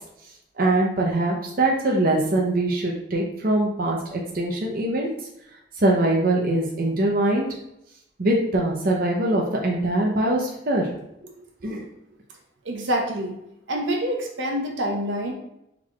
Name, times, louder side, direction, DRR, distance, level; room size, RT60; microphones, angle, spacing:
voice 1, 0.6-5.1 5.8-7.5 8.2-10.9 11.2-11.3 11.6-11.8, right 1 dB, 50° right, -1 dB, 0.6 m, -22 dB
voice 2, 12.6-13.3 13.7-15.3, equal, 85° right, 1 dB, 0.8 m, -26 dB
4.5 x 4.0 x 2.3 m, 0.82 s
head